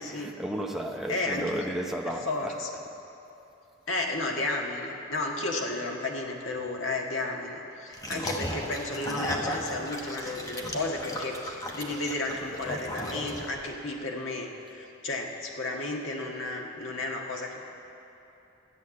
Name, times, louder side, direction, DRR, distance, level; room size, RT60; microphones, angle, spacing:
voice 1, 0.0-2.8 8.1-8.3 15.9-16.0, right 1 dB, ahead, 0.8 m, -34 dB
voice 2, 1.1-1.6 2.3-2.7 3.9-17.6, left 2 dB, 75° left, 1.6 m, -33 dB
sound 1, 7.9-13.7, equal, 20° left, 1.1 m, -35 dB
13.5 x 8.2 x 8.7 m
head